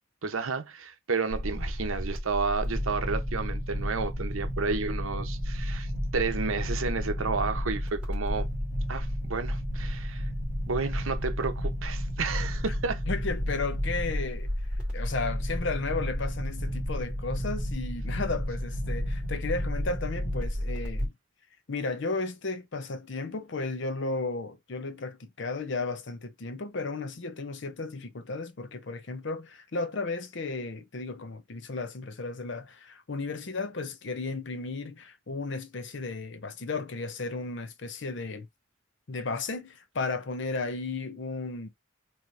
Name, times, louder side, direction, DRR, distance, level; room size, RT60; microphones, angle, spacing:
voice 1, 0.2-8.5 8.9-10.3 10.7-13.0, right 4 dB, 80° right, 0.9 m, -31 dB
sound 1, 1.3-21.1, equal, 5° right, 2.3 m, -32 dB
voice 2, 13.1-14.5 14.9-21.1 21.7-38.5 39.1-41.7, left 3 dB, 60° left, 0.6 m, -34 dB
4.5 x 3.1 x 2.5 m
head